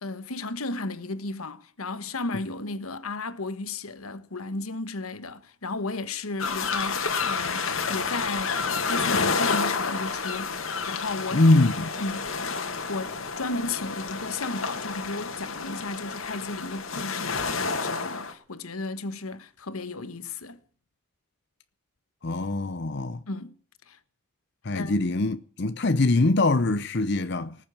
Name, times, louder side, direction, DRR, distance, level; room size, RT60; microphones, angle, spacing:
voice 1, 0.0-10.6 10.9-11.4 12.0-12.3 12.9-20.6 23.3-23.5 23.9-24.0 24.7-25.0, left 3 dB, 90° left, 1.4 m, -34 dB
sound 1, 6.4-18.3, left 4 dB, 70° left, 2.2 m, -29 dB
voice 2, 11.3-11.9 22.2-23.2 24.6-27.6, left 2 dB, 50° left, 0.7 m, -23 dB
19.5 x 7.5 x 9.1 m
head